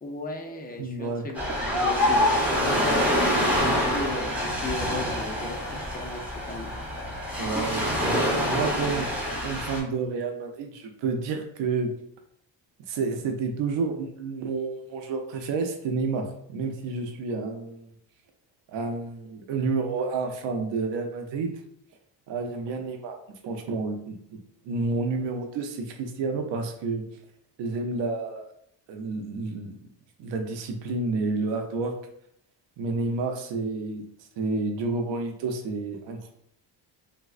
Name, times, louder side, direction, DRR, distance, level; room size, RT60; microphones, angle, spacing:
voice 1, 0.0-2.8 3.3-6.7, left 2 dB, 20° left, 2 dB, 0.4 m, -36 dB
voice 2, 0.8-1.2 7.4-11.9 12.9-17.9 18.7-21.5 22.3-23.2 23.4-24.4 24.6-27.0 27.6-28.5 28.9-29.8 30.2-31.9 32.8-34.1 34.4-36.3, right 4 dB, 80° right, 5 dB, 0.6 m, -30 dB
Ocean, 1.3-9.8, equal, 5° right, 0.9 m, -26 dB
3.4 x 2.1 x 2.4 m, 0.72 s
cardioid pair, 110°, 43 cm